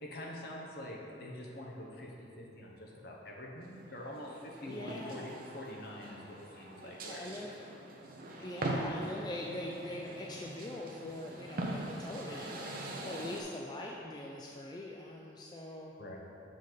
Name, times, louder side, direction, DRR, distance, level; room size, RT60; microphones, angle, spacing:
voice 1, 0.0-2.1 2.4-7.2 16.0-16.2, left 1 dB, 55° left, -2 dB, 1.0 m, -45 dB
sound 1, 3.8-13.4, right 1 dB, 50° right, 0.7 m, -42 dB
voice 2, 4.7-5.6 6.8-7.7 8.4-15.9, left 1 dB, 20° left, -2 dB, 0.3 m, -43 dB
6.9 x 5.2 x 3.9 m, 2.6 s
head